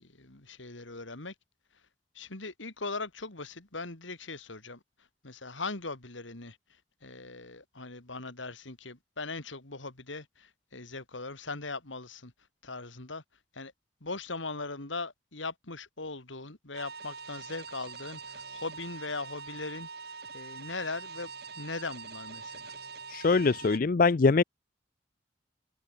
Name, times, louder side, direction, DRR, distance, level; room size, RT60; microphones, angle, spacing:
voice 1, 0.0-1.3 2.1-12.3 12.6-13.2 13.5-13.7 14.0-22.8, left 3 dB, 85° left, 3.1 m, -40 dB
sound 1, 16.7-23.8, right 5 dB, 55° right, 2.6 m, -44 dB
voice 2, 23.1-24.4, left 4 dB, 45° left, 0.5 m, -23 dB
head